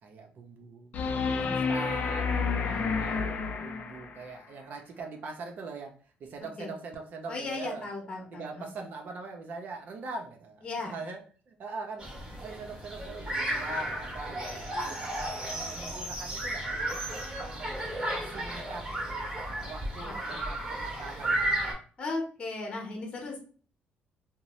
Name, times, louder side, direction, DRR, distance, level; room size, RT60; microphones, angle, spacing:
voice 1, 0.0-1.0 1.4-7.9 8.3-11.2 11.5-12.1 12.4-14.5 14.9-17.0 17.2-17.8 18.1-18.9 19.6-21.6, right 3 dB, 55° right, 4 dB, 0.6 m, -42 dB
sound 1, 0.9-4.3 6.9-7.0, left 5 dB, 50° left, 0.4 m, -30 dB
voice 2, 2.6-2.9 6.6-6.7 7.3-8.7 10.6-11.0 20.0-20.1 22.0-23.4, left 3 dB, 30° left, 0 dB, 0.9 m, -36 dB
sound 2, 12.0-21.7, right 1 dB, 25° right, 0.9 m, -34 dB
2.6 x 2.0 x 3.0 m, 0.40 s
cardioid pair, 125°, 4 cm